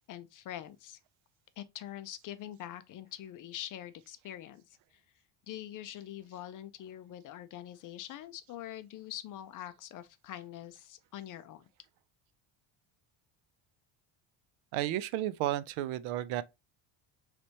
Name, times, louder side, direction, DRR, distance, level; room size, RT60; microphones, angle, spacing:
voice 1, 0.1-1.0 1.6-5.0 5.5-11.6, left 12 dB, 45° left, 0.4 m, -44 dB
voice 2, 14.7-16.4, right 14 dB, 80° right, 0.6 m, -32 dB
4.2 x 3.3 x 2.8 m
cardioid pair, 145°, 47 cm